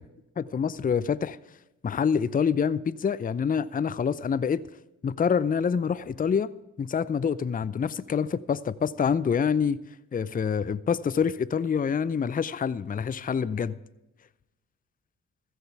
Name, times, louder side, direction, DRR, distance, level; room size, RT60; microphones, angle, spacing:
voice 1, 0.4-1.4 1.8-4.6 5.0-6.5 6.8-9.8 10.1-13.7, left 6 dB, 25° left, 0.6 m, -26 dB
14.5 x 14.5 x 3.4 m
hypercardioid pair, 40°, 36 cm